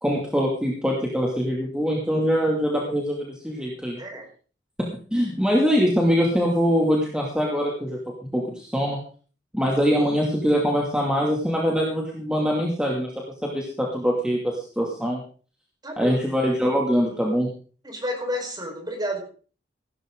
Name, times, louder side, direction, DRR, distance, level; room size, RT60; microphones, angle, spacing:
voice 1, 0.0-4.0 5.1-8.0 8.3-9.0 9.5-13.1 13.4-15.2 16.0-17.5, equal, 5° right, -2 dB, 2.5 m, -23 dB
voice 2, 15.8-16.2 17.8-19.2, equal, 25° right, 2 dB, 4.8 m, -30 dB
16.5 x 13.0 x 3.9 m, 0.40 s
head